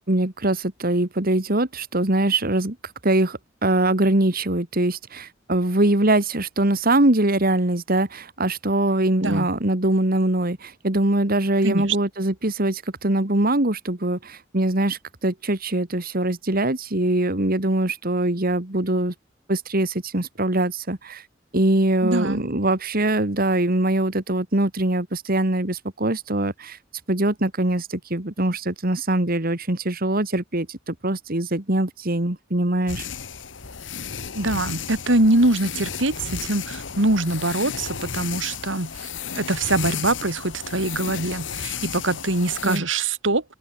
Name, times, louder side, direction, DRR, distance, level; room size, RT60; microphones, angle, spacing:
voice 1, 0.1-2.8 3.0-19.1 19.5-21.3 21.5-26.8 27.1-33.1 42.6-42.8, right 1 dB, 50° right, 2.5 m, -22 dB
voice 2, 11.6-12.0 22.0-22.4 34.3-39.1 39.3-43.4, right 2 dB, 80° right, 3.2 m, -23 dB
sound 1, 32.9-42.8, left 6 dB, 75° left, 1.8 m, -33 dB
open air
head